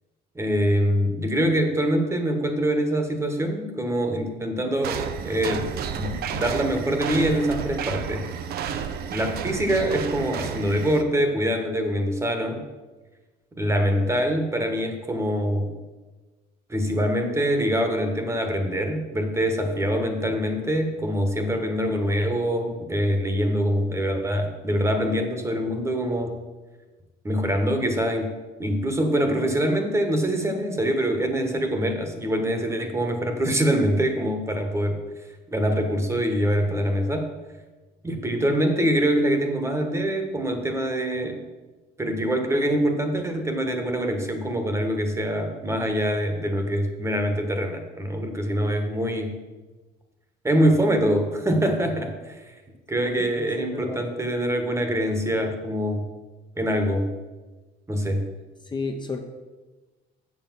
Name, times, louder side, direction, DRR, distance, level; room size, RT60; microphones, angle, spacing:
voice 1, 0.3-8.3 9.1-12.6 13.6-15.7 16.7-26.3 27.2-28.3 28.6-35.0 35.5-37.3 38.0-41.4 42.0-49.4 50.4-52.4 52.9-56.0 56.6-57.1 57.9-58.3, equal, 15° right, 5 dB, 1.3 m, -24 dB
sound 1, 4.8-11.0, right 7 dB, 65° right, 0.7 m, -31 dB
voice 2, 53.2-54.0 58.7-59.2, left 3 dB, 25° left, 3 dB, 0.9 m, -32 dB
7.4 x 6.7 x 5.9 m, 1.2 s
cardioid pair, 110°, 17 cm